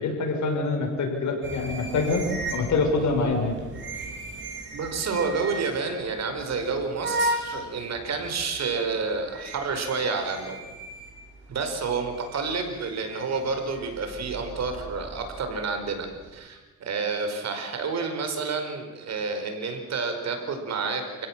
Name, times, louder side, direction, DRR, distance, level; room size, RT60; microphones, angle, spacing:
voice 1, 0.0-2.2 2.5-3.5, left 3 dB, 70° left, 2 dB, 6.7 m, -25 dB
sound 1, 1.4-16.3, right 2 dB, 40° right, 7.9 m, -37 dB
voice 2, 4.7-10.6 11.5-21.3, right 4 dB, 60° right, 6 dB, 5.0 m, -29 dB
29.0 x 16.5 x 7.6 m, 1.2 s
cardioid pair, 90°, 30 cm